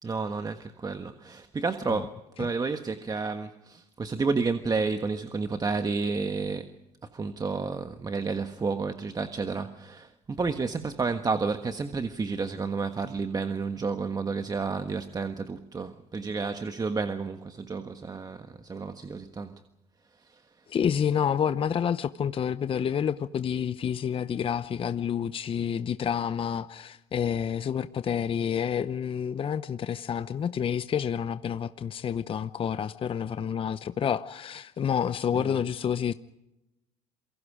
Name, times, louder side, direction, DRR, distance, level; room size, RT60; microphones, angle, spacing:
voice 1, 0.0-6.7 7.1-19.5 35.3-35.5, right 4 dB, 25° right, 1.5 m, -31 dB
voice 2, 20.7-36.1, left 8 dB, 40° left, 0.8 m, -29 dB
28.0 x 23.5 x 5.0 m
supercardioid pair, 80°, 15 cm